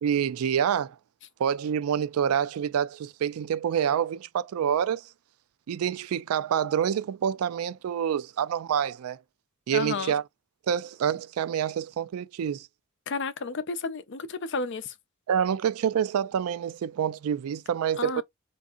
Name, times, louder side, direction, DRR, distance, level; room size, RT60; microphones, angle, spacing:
voice 1, 0.0-1.0 1.4-5.1 5.7-9.2 9.7-10.2 10.7-12.7 15.3-18.2, right 8 dB, 90° right, 0.3 m, -27 dB
voice 2, 9.7-10.1 13.1-14.9 18.0-18.2, left 4 dB, 55° left, 0.5 m, -32 dB
3.5 x 2.6 x 2.4 m
head